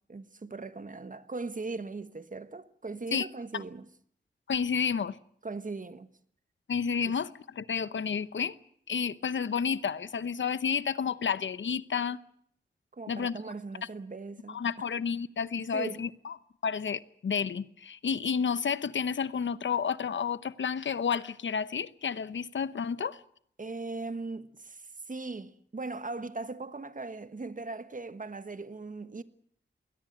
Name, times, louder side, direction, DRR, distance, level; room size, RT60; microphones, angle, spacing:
voice 1, 0.0-3.9 5.4-6.1 7.0-7.1 12.9-14.6 15.7-16.0 23.6-29.2, right 3 dB, 45° right, 1.3 m, -39 dB
voice 2, 4.5-5.2 6.7-8.6 8.9-12.2 13.1-13.4 14.5-16.3 16.6-23.2, left 6 dB, 85° left, 0.9 m, -31 dB
21.0 x 17.5 x 9.3 m
wide cardioid pair, 60°, 19 cm